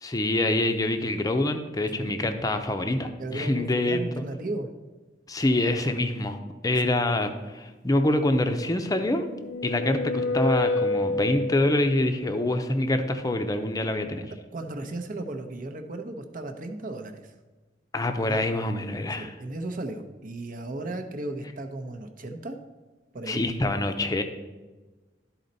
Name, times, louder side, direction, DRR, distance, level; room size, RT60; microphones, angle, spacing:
voice 1, 0.0-4.2 5.3-6.4 6.6-9.3 9.6-14.3 17.9-19.3 23.3-24.2, left 1 dB, 20° left, 6 dB, 0.6 m, -25 dB
voice 2, 3.2-4.7 6.7-6.8 14.5-17.3 18.3-18.4 19.2-22.6 23.1-23.4, right 2 dB, 50° right, 6 dB, 0.8 m, -35 dB
sound 1, 8.9-12.0, left 3 dB, 90° left, 0.3 m, -28 dB
12.0 x 4.3 x 4.0 m, 1.2 s
head